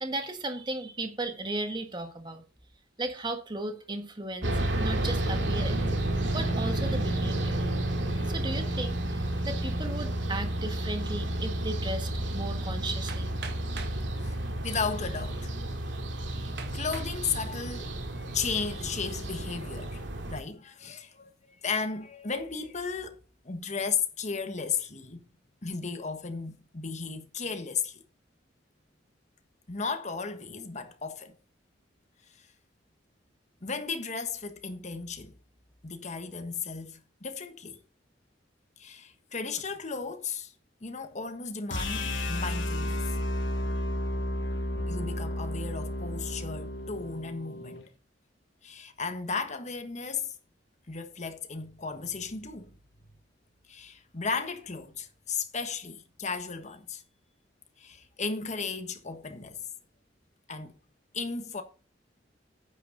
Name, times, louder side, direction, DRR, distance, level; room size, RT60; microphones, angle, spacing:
voice 1, 0.0-2.4 3.0-4.5 4.8-7.6 8.3-13.3, right 2 dB, 25° right, 1.6 m, -36 dB
sound 1, 4.4-20.4, right 1 dB, 80° right, 2.2 m, -31 dB
Hammer, 13.1-14.0 14.9-15.0 15.6-15.7 16.6-17.2 17.8-18.2, right 6 dB, 65° right, 1.7 m, -43 dB
voice 2, 14.2-15.5 16.7-23.2 23.4-25.2 25.6-28.0 29.7-31.4 32.4-32.5 33.6-35.4 35.8-37.8 38.8-40.5 40.8-43.0 44.9-47.8 48.6-50.4 50.9-52.8 53.7-57.0 57.8-59.6 60.5-60.7 61.1-61.6, left 5 dB, 40° left, 1.4 m, -35 dB
sound 2, 41.7-47.8, left 1 dB, 85° left, 2.4 m, -32 dB
9.4 x 9.2 x 4.0 m
head